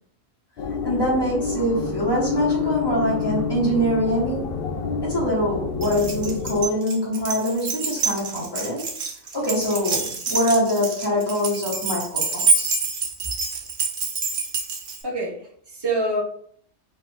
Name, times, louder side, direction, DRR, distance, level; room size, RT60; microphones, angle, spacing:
sound 1, 0.6-6.6, left 5 dB, 60° left, 0.6 m, -27 dB
voice 1, 0.8-4.5 5.0-8.9 9.3-12.7, equal, 20° left, 1.3 m, -24 dB
Keys jangling, 5.8-15.0, right 4 dB, 50° right, 0.9 m, -26 dB
voice 2, 15.0-16.2, right 2 dB, 25° right, 0.6 m, -26 dB
3.3 x 2.6 x 4.3 m
omnidirectional pair, 1.3 m